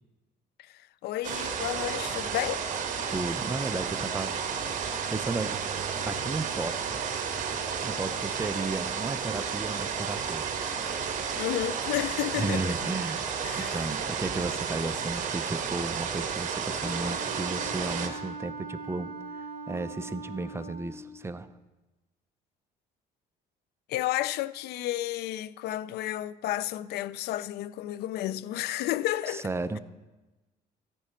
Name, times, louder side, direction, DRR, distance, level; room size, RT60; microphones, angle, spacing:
voice 1, 0.6-2.6 11.4-12.8 13.4-13.9 23.9-29.5, left 14 dB, 70° left, 0.4 m, -32 dB
sound 1, 1.2-18.1, right 6 dB, 50° right, 1.4 m, -32 dB
voice 2, 3.1-4.3 4.9-5.6 6.1-7.0 7.8-10.5 12.3-21.5 29.3-29.8, right 3 dB, 15° right, 0.5 m, -34 dB
Wind instrument woodwind instrument, 16.8-21.0, right 3 dB, 45° left, 3.0 m, -41 dB
14.0 x 9.9 x 4.4 m
cardioid pair, 110°, 17 cm